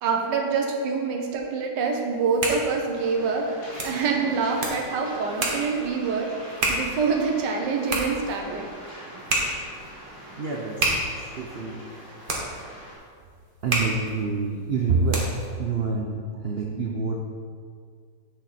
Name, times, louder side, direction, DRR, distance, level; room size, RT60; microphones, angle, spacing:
voice 1, 0.0-3.5 3.8-6.3 6.7-8.7, right 5 dB, 75° right, 1 dB, 1.6 m, -26 dB
sound 1, 2.1-15.6, right 1 dB, 35° right, 1.2 m, -31 dB
Waves surf, 2.9-13.0, equal, 85° left, 3.0 m, -43 dB
voice 2, 10.4-11.9 12.8-13.0 13.6-15.3 15.6-17.2, right 4 dB, 60° right, 0 dB, 0.6 m, -27 dB
7.9 x 6.6 x 4.2 m, 2.1 s
omnidirectional pair, 1.9 m